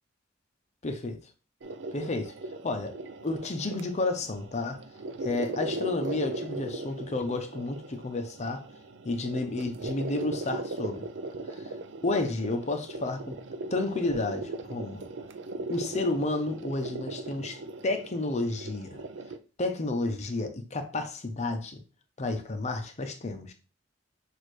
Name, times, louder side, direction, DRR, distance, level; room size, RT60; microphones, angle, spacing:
voice 1, 0.8-1.2 1.9-2.3 2.6-2.9 3.2-4.8 5.2-8.6 9.0-11.1 11.5-11.7 12.0-13.4 13.7-15.0 15.7-19.0 19.6-21.8 22.2-23.5, left 2 dB, 35° left, 0.7 m, -31 dB
sound 1, 1.6-19.4, right 3 dB, 65° right, 0.5 m, -39 dB
6.3 x 2.6 x 3.2 m
head